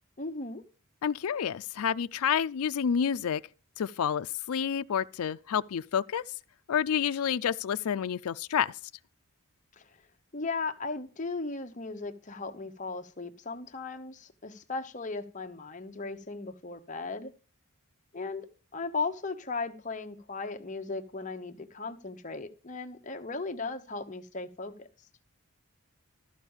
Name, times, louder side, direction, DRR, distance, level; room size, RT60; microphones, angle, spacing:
voice 1, 0.2-0.6 9.8-9.9 10.3-17.3 18.1-24.9, left 3 dB, 35° left, 0.9 m, -37 dB
voice 2, 1.0-3.4 3.8-6.2 6.7-8.7, left 8 dB, 80° left, 0.4 m, -29 dB
13.5 x 4.7 x 7.1 m
head